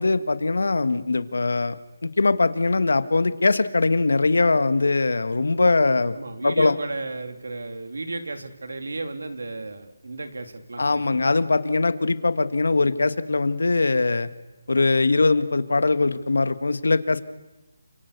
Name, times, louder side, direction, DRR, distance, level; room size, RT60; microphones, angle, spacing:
voice 1, 0.0-6.2 6.4-6.7 10.8-14.3 14.7-17.2, left 3 dB, 80° left, 11 dB, 1.9 m, -21 dB
voice 2, 6.1-11.2, right 2 dB, 75° right, 7 dB, 3.4 m, -34 dB
29.0 x 27.0 x 6.9 m, 1.1 s
hypercardioid pair, 175°, 0 cm